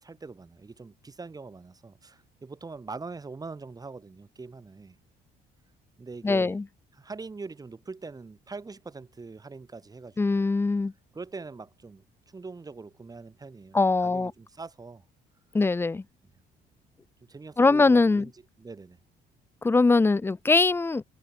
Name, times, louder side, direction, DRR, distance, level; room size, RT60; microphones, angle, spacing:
voice 1, 0.0-5.0 6.0-6.6 6.9-10.5 11.1-15.0 17.2-18.3 18.6-19.0, right 4 dB, 20° right, 4.5 m, -42 dB
voice 2, 6.2-6.6 10.2-10.9 13.7-14.3 15.5-16.0 17.6-18.3 19.6-21.0, left 3 dB, 15° left, 0.6 m, -22 dB
cardioid pair, 110°, 17 cm